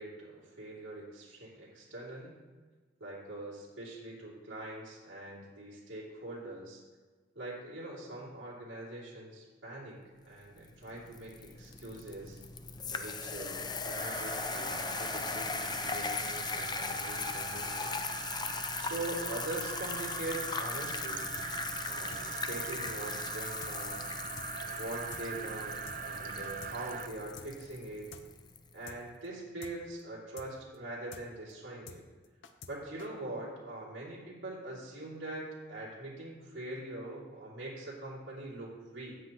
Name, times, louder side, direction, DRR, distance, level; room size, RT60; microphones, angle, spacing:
voice 1, 0.0-2.4 3.0-6.8 7.3-10.0 10.2-12.4 12.9-17.9 18.7-21.4 21.9-24.0 24.6-28.1 28.7-32.0 32.6-39.2, right 2 dB, 90° right, -6 dB, 2.8 m, -43 dB
sound 1, 10.6-28.6, left 5 dB, 20° left, 0.5 m, -39 dB
sound 2, 14.0-27.1, right 7 dB, 45° right, 0.4 m, -42 dB
sound 3, 21.4-21.5 21.7-21.8 22.1-22.2 22.5-22.6 22.9-23.0 23.2-23.3 23.6-23.7 24.0-24.1 24.4-24.5 24.7-24.8 25.1-25.2 25.5-25.6 25.9-26.0 26.2-26.7 27.0-27.1 27.4-27.5 27.7-27.8 28.1-28.2 28.5-28.6 28.9-29.0 29.2-29.3 29.6-29.7 30.0-30.1 30.4-30.5 30.7-30.8 31.1-31.2 31.5-31.6 31.9-32.7 33.0-33.1, left 5 dB, 75° left, 0.7 m, -48 dB
13.0 x 8.2 x 3.0 m, 1.4 s
head